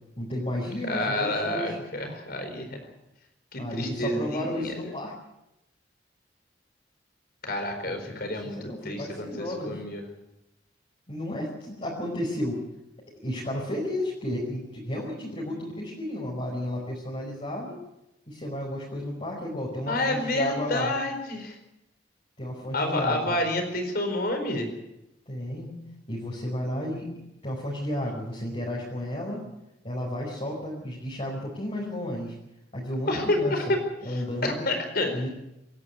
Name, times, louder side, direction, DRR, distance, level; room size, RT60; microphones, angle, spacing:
voice 1, 0.2-1.7 3.6-5.1 7.8-9.8 11.1-12.6 13.2-17.8 18.3-20.9 22.4-23.4 25.3-25.8 26.1-27.1 27.4-29.4 29.8-32.4 32.7-33.7 34.0-34.7 35.1-35.3, left 1 dB, 35° left, -4 dB, 5.0 m, -32 dB
voice 2, 0.9-2.8 3.5-4.7 7.4-10.0 19.9-21.6 22.7-24.7 33.1-33.8 34.1-35.1, left 1 dB, 55° left, 6 dB, 4.6 m, -29 dB
26.5 x 11.5 x 9.5 m, 0.90 s
head